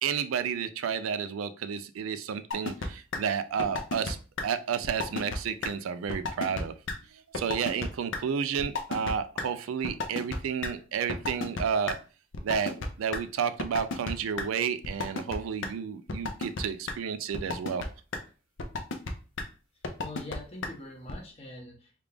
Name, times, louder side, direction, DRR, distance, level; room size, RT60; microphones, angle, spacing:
voice 1, 0.0-4.2 4.4-6.7 7.3-12.0 12.4-17.8, right 7 dB, 85° right, 11 dB, 0.3 m, -31 dB
sound 1, 2.5-2.9 3.1-3.2 3.6-4.1 4.4-4.5 4.8-5.4 5.6-5.7 6.1-6.6 6.9-7.0 7.3-7.9 8.1-8.2 8.6-9.1 9.4-9.5 9.8-10.7 11.1-11.9 12.3-13.2 13.6-14.1 14.4-14.5 14.8-15.4 15.6-15.7 16.1-16.6 16.9-17.0 17.3-17.9 18.1-18.2 18.6-19.1 19.4-19.5 19.8-20.4 20.6-20.7 21.1-21.2, left 3 dB, 65° left, 0.5 m, -32 dB
voice 2, 20.0-22.0, left 2 dB, 30° left, 0 dB, 0.9 m, -43 dB
3.4 x 2.4 x 3.3 m, 0.36 s
head